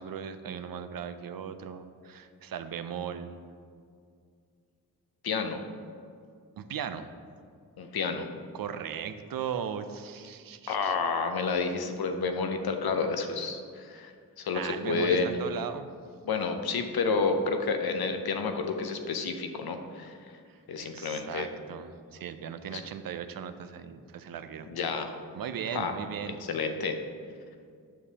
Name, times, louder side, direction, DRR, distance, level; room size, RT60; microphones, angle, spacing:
voice 1, 0.0-3.4 6.6-7.1 8.5-10.9 14.5-15.9 20.5-24.7 25.3-26.4, right 8 dB, 65° right, 10 dB, 0.5 m, -38 dB
voice 2, 5.2-5.6 7.8-8.3 10.7-14.1 14.4-15.4 16.2-20.2 20.7-21.5 22.7-22.8 24.7-25.1 25.7-25.9 26.5-26.9, left 4 dB, 75° left, 6 dB, 0.7 m, -30 dB
7.4 x 6.6 x 2.8 m, 2.2 s
cardioid pair, 45°, 38 cm